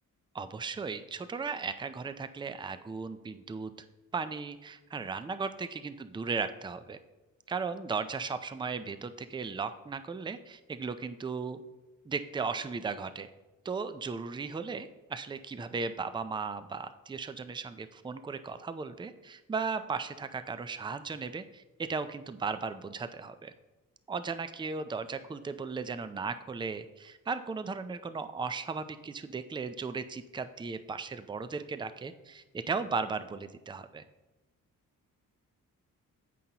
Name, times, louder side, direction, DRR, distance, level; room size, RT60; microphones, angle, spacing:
voice 1, 0.3-3.7 4.1-7.0 7.5-11.6 12.1-13.3 13.6-23.5 24.1-34.0, right 4 dB, 15° right, 11 dB, 0.4 m, -36 dB
14.5 x 5.4 x 2.9 m, 1.1 s
cardioid pair, 100°, 34 cm